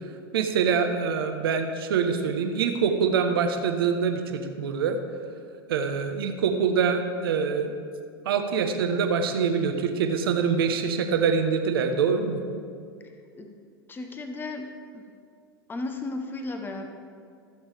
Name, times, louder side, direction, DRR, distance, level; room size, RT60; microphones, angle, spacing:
voice 1, 0.3-5.0 5.7-7.7 8.2-12.4, right 6 dB, 70° right, 6 dB, 1.1 m, -25 dB
voice 2, 13.9-15.0 15.7-16.9, left 2 dB, 15° left, 5 dB, 1.0 m, -35 dB
16.0 x 7.2 x 3.5 m, 2.2 s
hypercardioid pair, 100°, 13 cm